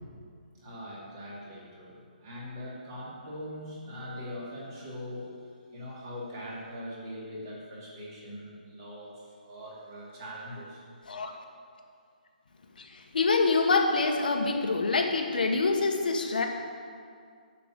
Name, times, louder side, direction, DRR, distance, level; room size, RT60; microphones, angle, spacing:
voice 1, 0.6-5.3 5.7-10.8, equal, 25° right, -5 dB, 2.5 m, -41 dB
voice 2, 13.1-16.5, left 3 dB, 65° left, 3 dB, 1.2 m, -25 dB
9.9 x 5.9 x 8.0 m, 2.2 s
hypercardioid pair, 175°, 5 cm